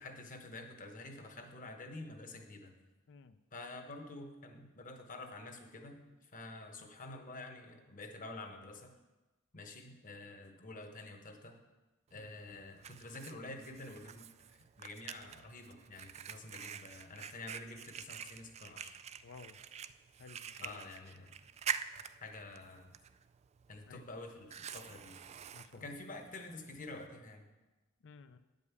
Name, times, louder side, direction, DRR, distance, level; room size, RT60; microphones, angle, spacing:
voice 1, 0.0-2.7 3.5-8.9 9.5-11.6 12.1-14.3 14.8-19.0 20.6-21.3 21.9-22.9 23.7-25.2 25.7-27.5, left 2 dB, 40° left, 4 dB, 1.1 m, -48 dB
Fire, 12.1-27.1, right 8 dB, 30° right, 0.3 m, -47 dB
voice 2, 19.2-19.6 20.2-20.8 23.9-24.1 25.5-25.9 28.0-28.4, left 4 dB, 60° left, 12 dB, 0.5 m, -54 dB
9.6 x 5.3 x 8.2 m, 1.1 s
head